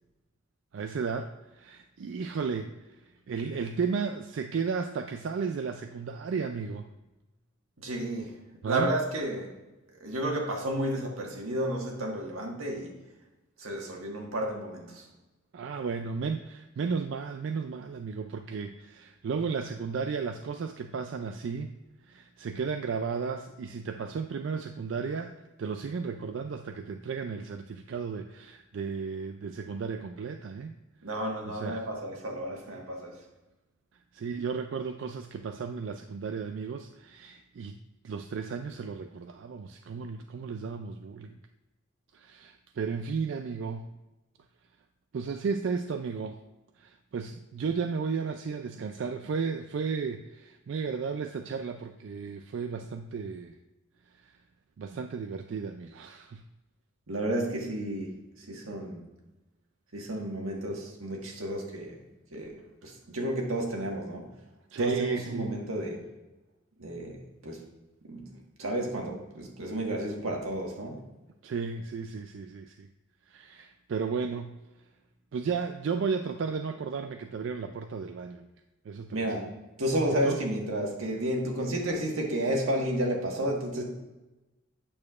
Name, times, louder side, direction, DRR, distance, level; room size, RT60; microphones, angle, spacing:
voice 1, 0.7-3.0 3.3-6.9 8.6-8.9 15.5-21.7 22.1-30.7 31.5-31.9 34.1-37.8 38.0-41.4 42.1-43.9 45.1-46.4 46.8-53.6 54.3-54.4 54.8-56.4 64.7-65.5 71.4-72.9 73.3-74.6 75.3-78.5 78.9-79.5 80.2-80.5, right 5 dB, 60° right, 6 dB, 0.3 m, -34 dB
voice 2, 7.8-8.3 8.7-9.5 10.0-13.0 13.6-15.0 31.0-33.2 57.1-59.1 59.9-62.0 62.3-62.6 62.8-64.3 64.8-66.0 66.8-67.2 67.4-67.6 68.1-68.2 68.6-71.0 79.1-79.5 79.8-83.8, right 1 dB, 90° right, 0 dB, 1.5 m, -31 dB
8.6 x 6.5 x 2.4 m, 1.1 s
head